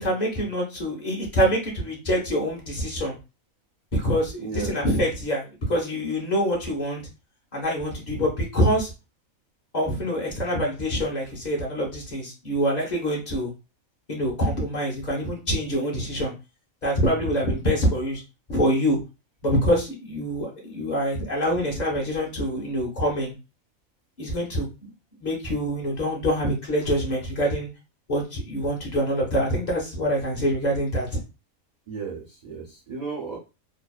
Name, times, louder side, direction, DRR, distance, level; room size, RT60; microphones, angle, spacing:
voice 1, 0.0-3.1 3.9-7.0 7.5-8.9 9.7-13.5 14.1-16.3 16.8-18.2 18.5-19.0 19.4-23.3 24.2-24.9 25.2-27.7 28.1-31.2, equal, 40° left, -2 dB, 0.7 m, -25 dB
voice 2, 4.4-4.8 31.9-33.4, right 5 dB, 60° right, -3 dB, 0.4 m, -34 dB
2.6 x 2.1 x 2.3 m, 0.29 s
omnidirectional pair, 1.4 m